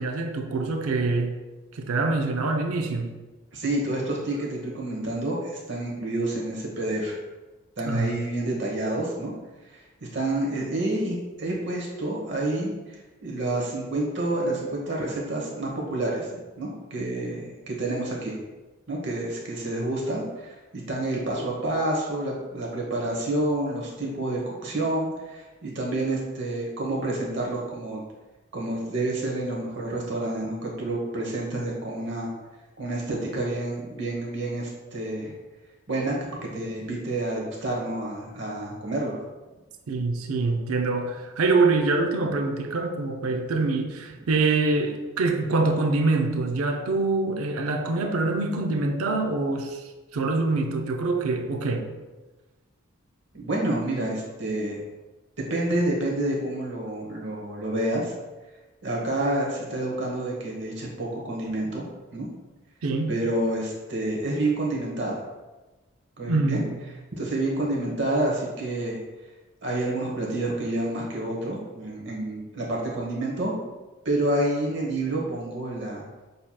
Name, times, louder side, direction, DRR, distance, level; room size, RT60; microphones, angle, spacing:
voice 1, 0.0-1.4 1.7-3.2 7.8-8.2 39.9-49.8 50.1-51.9 62.8-63.1 66.3-66.8, right 3 dB, 90° right, 0.5 m, -25 dB
voice 2, 3.5-7.1 7.8-9.3 9.7-9.8 10.1-12.9 13.2-16.3 16.6-18.4 18.9-28.0 28.5-32.3 32.8-35.3 35.9-36.1 36.4-39.2 53.3-54.8 55.5-58.1 58.8-61.8 62.1-62.3 63.1-65.1 66.2-66.6 67.2-69.0 69.6-73.5 74.0-76.0, right 1 dB, 55° right, 1.0 m, -28 dB
6.5 x 2.8 x 2.2 m
head